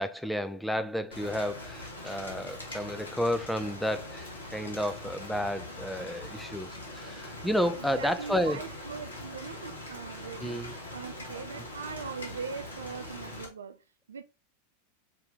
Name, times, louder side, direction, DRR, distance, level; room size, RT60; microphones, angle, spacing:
voice 1, 0.0-8.6 10.4-10.8, equal, ahead, 0.4 m, -31 dB
Rain, 1.1-13.4, left 1 dB, 75° left, 1.4 m, -42 dB
voice 2, 7.8-14.2, right 6 dB, 70° right, 0.4 m, -41 dB
5.1 x 2.8 x 3.4 m
figure-of-eight pair, 90°, 0 cm